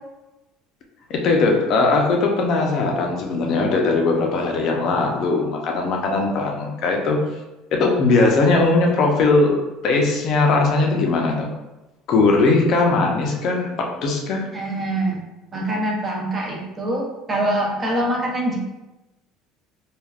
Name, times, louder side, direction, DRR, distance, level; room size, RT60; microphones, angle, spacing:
voice 1, 1.1-7.2 7.7-11.5 12.1-14.5, left 3 dB, 50° left, 1 dB, 0.5 m, -19 dB
voice 2, 14.5-15.2 15.5-18.6, right 1 dB, 20° right, -1 dB, 0.6 m, -24 dB
3.3 x 2.3 x 2.3 m, 1.0 s
cardioid pair, 135°, 0 cm